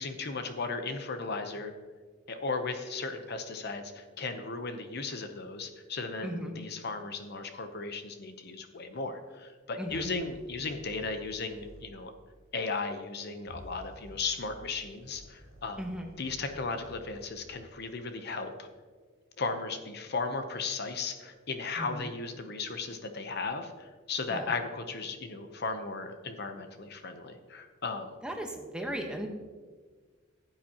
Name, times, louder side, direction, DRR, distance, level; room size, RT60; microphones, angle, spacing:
voice 1, 0.0-1.7 2.3-12.1 12.5-15.8 16.2-18.7 19.4-28.1, left 4 dB, 55° left, 7 dB, 0.8 m, -36 dB
voice 2, 6.2-6.5 9.8-10.1 15.8-16.1 21.8-22.1 24.3-24.5 28.2-29.3, equal, 5° right, 2 dB, 1.1 m, -36 dB
sound 1, 9.9-11.9 13.4-17.7, equal, 85° right, 2.9 m, -52 dB
15.5 x 8.7 x 2.9 m, 1.5 s
head